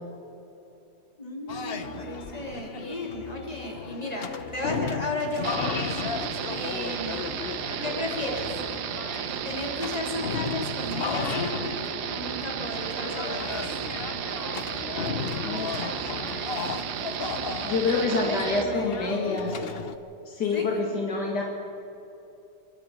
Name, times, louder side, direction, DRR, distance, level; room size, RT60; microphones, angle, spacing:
voice 1, 1.2-5.7 6.5-7.2 7.8-8.5 9.4-13.7 14.4-14.6 17.9-19.1 20.5-20.7, left 1 dB, 20° left, 0 dB, 3.7 m, -34 dB
sound 1, 1.5-20.0, left 5 dB, 45° left, 0.9 m, -35 dB
sound 2, 5.4-18.6, right 9 dB, 80° right, 1.4 m, -33 dB
voice 2, 15.4-16.0 17.6-19.6 20.3-21.4, left 3 dB, 85° left, -1 dB, 2.9 m, -27 dB
27.0 x 11.5 x 9.2 m, 2.9 s
omnidirectional pair, 1.8 m